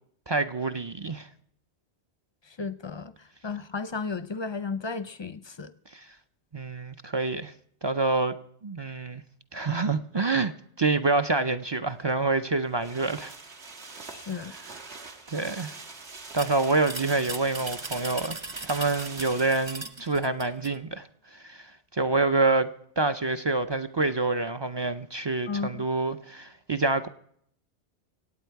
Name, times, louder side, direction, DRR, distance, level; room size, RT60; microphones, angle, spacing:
voice 1, 0.3-1.3 5.9-6.1 6.5-7.5 7.8-8.3 8.6-9.2 9.5-10.5 10.8-13.3 15.3-15.7 16.3-18.4 18.6-27.1, right 3 dB, 45° right, 0.3 m, -27 dB
voice 2, 2.5-5.7 14.0-14.5 25.5-25.7, left 4 dB, 35° left, 0.4 m, -34 dB
sound 1, 12.0-20.2 20.5-20.6, right 3 dB, 75° right, 1.8 m, -44 dB
sound 2, 16.4-20.8, right 2 dB, 30° right, 0.7 m, -38 dB
24.0 x 8.9 x 4.6 m
omnidirectional pair, 1.2 m